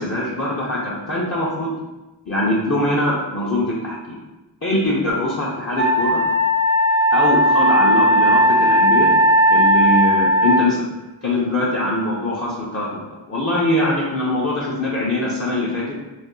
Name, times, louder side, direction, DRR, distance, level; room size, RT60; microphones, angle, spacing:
voice 1, 0.0-1.8 2.3-4.2 4.6-6.2 7.1-9.1 9.5-10.8 11.2-13.0 13.3-16.0, left 1 dB, 35° left, -7 dB, 0.6 m, -22 dB
Wind instrument woodwind instrument, 5.8-10.7, equal, 30° right, 0.4 m, -16 dB
2.6 x 2.3 x 3.6 m, 1.1 s
wide cardioid pair, 60°, 45 cm